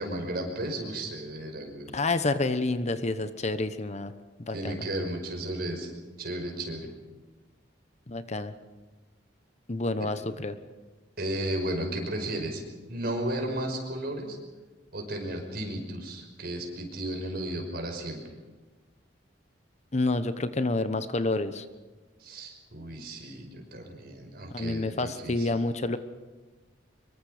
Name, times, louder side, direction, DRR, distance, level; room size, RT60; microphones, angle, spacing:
voice 1, 0.0-1.9 4.5-5.9 6.2-6.9 11.2-12.6 12.9-14.4 14.9-18.2 22.2-25.5, right 1 dB, 55° right, 3 dB, 5.6 m, -34 dB
voice 2, 1.9-4.1 4.4-4.8 8.1-8.5 9.7-10.6 19.9-21.6 24.5-26.0, left 2 dB, 40° left, 11 dB, 1.1 m, -28 dB
25.0 x 23.0 x 5.1 m, 1.3 s
head